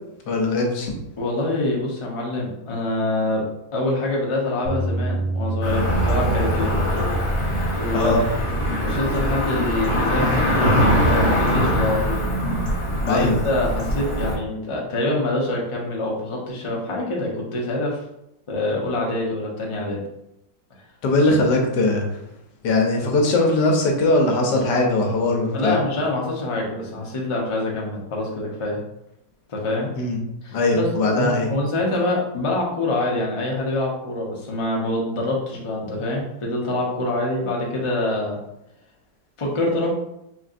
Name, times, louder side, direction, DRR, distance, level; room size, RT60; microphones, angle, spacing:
voice 1, 0.3-1.0 7.9-8.2 13.1-13.4 21.0-22.0 22.6-25.8 30.0-30.2 30.5-31.5, left 2 dB, 75° left, 1 dB, 1.4 m, -20 dB
voice 2, 1.2-3.4 3.7-6.7 7.7-8.3 8.8-12.3 13.0-18.0 18.5-20.0 25.5-28.8 29.5-29.9 30.4-38.4 39.4-39.9, left 2 dB, 45° left, -2 dB, 0.3 m, -25 dB
Bass guitar, 4.6-10.9, right 2 dB, 55° right, 0.9 m, -30 dB
Cricket / Motor vehicle (road), 5.6-14.3, equal, 25° left, 0.8 m, -22 dB
4.2 x 3.4 x 2.5 m, 0.84 s
omnidirectional pair, 1.9 m